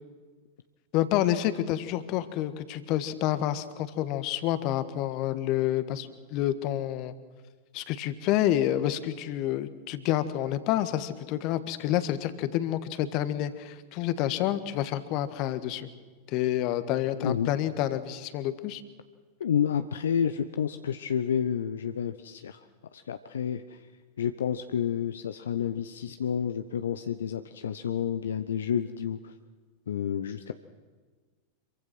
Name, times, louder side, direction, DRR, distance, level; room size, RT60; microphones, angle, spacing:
voice 1, 0.9-7.1 7.7-15.9 16.3-18.8, left 12 dB, 40° left, 12 dB, 1.6 m, -28 dB
voice 2, 19.4-22.6 22.9-23.9 24.2-29.3 29.9-30.5, left 8 dB, 65° left, 9 dB, 0.8 m, -30 dB
26.5 x 23.5 x 6.2 m, 1.4 s
figure-of-eight pair, 90°, 0 cm